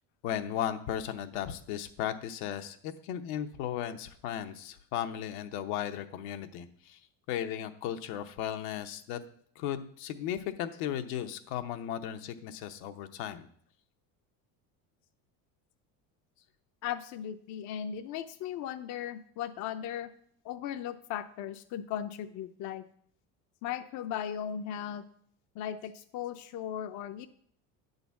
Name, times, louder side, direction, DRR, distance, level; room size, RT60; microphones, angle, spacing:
voice 1, 0.2-7.0 7.3-9.2 9.6-13.5, left 10 dB, 80° left, 7 dB, 0.9 m, -36 dB
voice 2, 16.8-20.1 20.4-22.9 23.6-25.0 25.6-27.3, left 9 dB, 50° left, 8 dB, 0.6 m, -37 dB
9.2 x 4.0 x 7.0 m, 0.62 s
cardioid pair, 125°, 37 cm